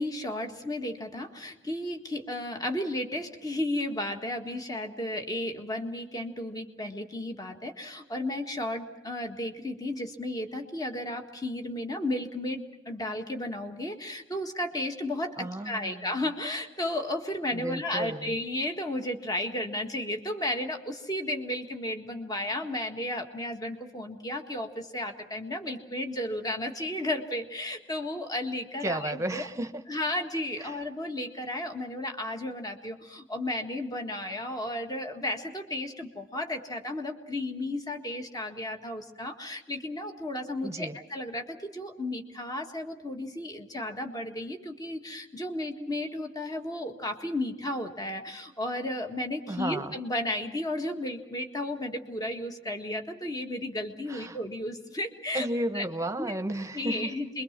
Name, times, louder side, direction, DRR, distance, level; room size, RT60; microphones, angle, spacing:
voice 1, 0.0-29.5 29.9-55.5 55.7-55.9 56.2-56.4 56.7-57.4, left 1 dB, 20° left, 4 dB, 1.7 m, -33 dB
voice 2, 15.4-16.1 17.5-18.4 28.8-29.8 30.6-30.8 40.6-41.0 49.5-49.9 54.1-54.4 55.3-57.1, right 1 dB, 15° right, 8 dB, 1.2 m, -33 dB
27.5 x 23.0 x 6.0 m, 0.96 s
head